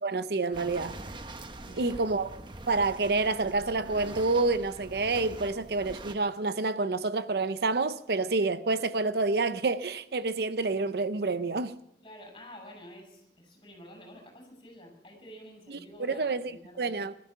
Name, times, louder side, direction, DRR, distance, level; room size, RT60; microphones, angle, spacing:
voice 1, 0.0-0.9 1.8-2.3 2.7-11.8 15.7-16.5 16.8-17.1, right 3 dB, 65° right, 0.6 m, -28 dB
sound 1, 0.5-6.1, right 2 dB, 25° right, 0.9 m, -44 dB
voice 2, 1.6-2.1 12.0-17.0, equal, 30° left, 5.8 m, -49 dB
19.5 x 13.0 x 5.6 m
head